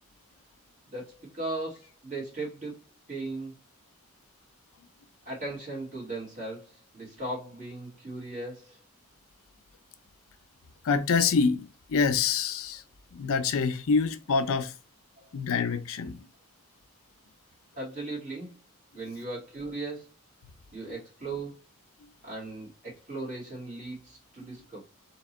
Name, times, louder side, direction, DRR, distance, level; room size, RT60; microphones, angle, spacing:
voice 1, 0.9-2.8 3.1-3.5 5.2-8.8 15.2-15.3 17.8-18.6 18.9-20.1 20.7-21.6 22.2-24.8, right 2 dB, 35° right, 2.2 m, -37 dB
voice 2, 10.8-12.8 13.1-14.7 15.3-16.2, left 5 dB, 65° left, 0.5 m, -26 dB
3.6 x 2.9 x 4.1 m
head